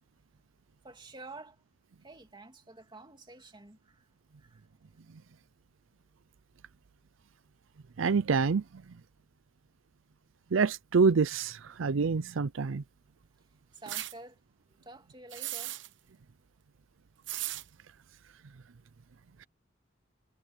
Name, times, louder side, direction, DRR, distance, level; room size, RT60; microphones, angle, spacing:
voice 1, 0.8-1.6 2.0-4.1 4.4-4.6 13.7-14.4 14.8-15.8, right 2 dB, 25° right, 2.7 m, -49 dB
voice 2, 8.0-8.6 10.5-12.8, right 5 dB, 80° right, 0.5 m, -26 dB
sound 1, 13.9-14.1 15.3-15.9 17.3-17.6, right 14 dB, 65° right, 0.9 m, -36 dB
head